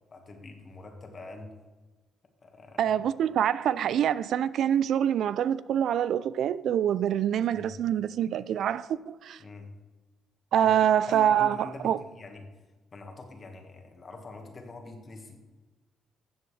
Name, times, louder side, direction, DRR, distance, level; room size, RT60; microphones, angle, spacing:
voice 1, 0.1-1.6 2.4-3.0 7.5-7.8 9.4-9.7 10.6-12.5 12.9-15.4, left 3 dB, 40° left, 1.7 m, -44 dB
voice 2, 2.8-9.4 10.5-11.6 11.8-12.0, right 10 dB, 70° right, 0.3 m, -25 dB
13.0 x 7.7 x 3.3 m
cardioid pair, 90°, 0 cm